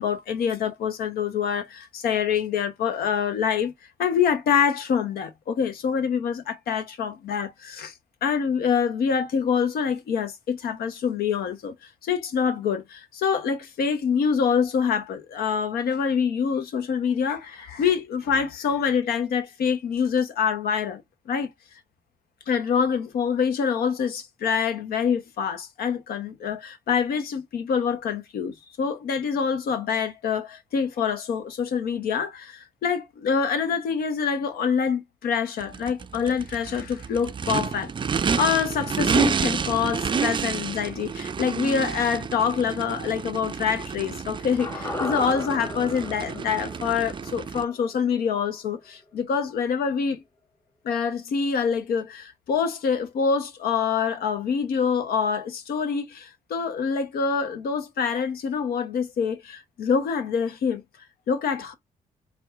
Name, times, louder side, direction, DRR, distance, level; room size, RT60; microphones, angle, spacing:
voice 1, 0.0-3.7 4.0-7.9 8.2-11.7 12.0-21.0 21.3-21.5 22.5-37.9 38.4-50.2 50.8-60.8 61.3-61.7, left 6 dB, 70° left, 0.8 m, -25 dB
Race car auto racing / Idling / Accelerating revving vroom, 35.6-47.6, right 6 dB, 30° right, 0.4 m, -29 dB
sound 1, 44.6-48.9 49.2-49.3, left 2 dB, 15° left, 0.9 m, -36 dB
4.2 x 2.2 x 2.4 m
supercardioid pair, 55°, 16 cm